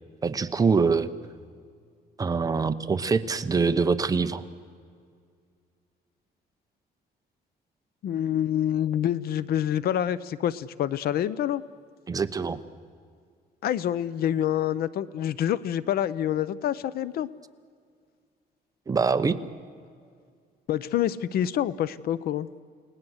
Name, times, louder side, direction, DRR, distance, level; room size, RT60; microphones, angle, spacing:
voice 1, 0.2-1.1 2.2-4.4 12.1-12.6 18.9-19.4, right 5 dB, 20° right, 9 dB, 0.9 m, -24 dB
voice 2, 8.0-11.6 13.6-17.3 20.7-22.5, left 10 dB, 65° left, 17 dB, 0.7 m, -27 dB
29.5 x 19.0 x 8.0 m, 2.1 s
cardioid pair, 155°, 17 cm